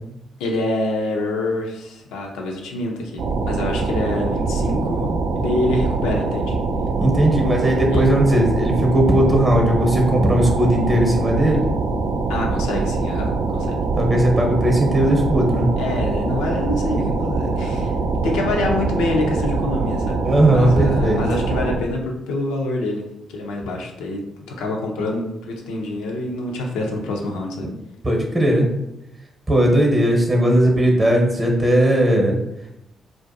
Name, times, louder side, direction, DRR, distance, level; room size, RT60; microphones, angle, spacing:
voice 1, 0.4-5.1 5.3-6.6 7.9-8.0 12.3-13.8 15.8-17.9 18.2-20.2 20.5-23.0 23.3-27.7, left 2 dB, 75° left, 1 dB, 0.4 m, -26 dB
sound 1, 3.2-21.8, right 3 dB, 70° right, 0.3 m, -23 dB
voice 2, 7.0-11.6 13.9-15.7 20.2-21.2 28.0-28.7 29.5-32.3, right 1 dB, 30° right, 1 dB, 0.8 m, -17 dB
2.5 x 2.2 x 2.5 m, 0.84 s
hypercardioid pair, 40°, 0 cm